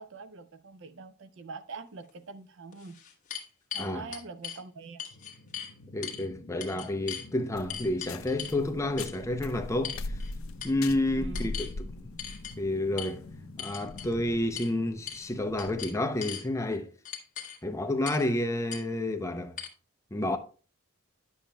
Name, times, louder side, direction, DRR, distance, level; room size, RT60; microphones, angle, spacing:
voice 1, 0.0-3.0 3.7-5.0 11.1-11.5, right 4 dB, 60° right, 0.5 m, -44 dB
sound 1, 2.1-2.2 2.7-4.6 5.0-5.7 6.0-6.2 6.6-7.3 7.7-8.6 9.0-9.2 9.8-10.3 10.6-11.0 11.3-11.7 12.2-12.5 13.0-13.1 13.6-14.1 14.6-14.7 15.1-15.3 15.6-16.4 17.1-17.6 18.1-18.3 18.7-18.8 19.6-19.7, left 8 dB, 40° left, 1.2 m, -39 dB
sound 2, 5.1-16.0, left 2 dB, 90° left, 0.9 m, -50 dB
voice 2, 5.9-10.2 10.6-11.7 12.0-12.1 12.6-13.2 13.6-16.9 17.6-19.6 20.1-20.4, left 1 dB, 15° left, 0.5 m, -30 dB
sound 3, 7.5-15.9, left 2 dB, 70° left, 0.5 m, -41 dB
10.0 x 7.0 x 2.2 m
head